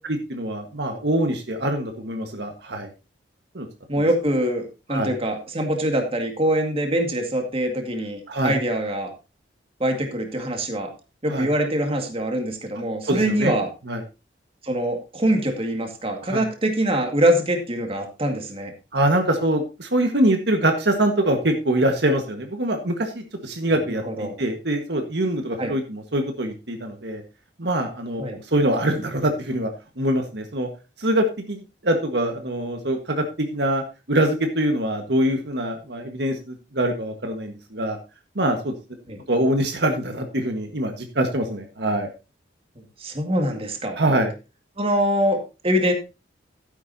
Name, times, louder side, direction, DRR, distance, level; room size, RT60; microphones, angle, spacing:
voice 1, 0.3-2.9 3.5-3.7 4.0-4.1 4.9-5.1 8.3-8.5 11.3-11.5 13.1-13.5 13.9-14.0 16.3-16.4 18.9-27.2 27.6-28.2 28.5-29.7 30.0-30.7 31.0-33.8 34.1-38.0 38.3-38.7 39.3-42.1 44.0-44.3, right 1 dB, 65° right, 4 dB, 1.6 m, -24 dB
voice 2, 3.9-9.1 9.8-10.9 11.2-13.7 14.6-18.7 23.9-24.3 25.6-25.7 28.2-28.4 39.1-39.2 43.0-44.0 44.8-45.9, right 1 dB, 30° right, 4 dB, 2.1 m, -24 dB
12.5 x 10.0 x 2.8 m, 0.29 s
head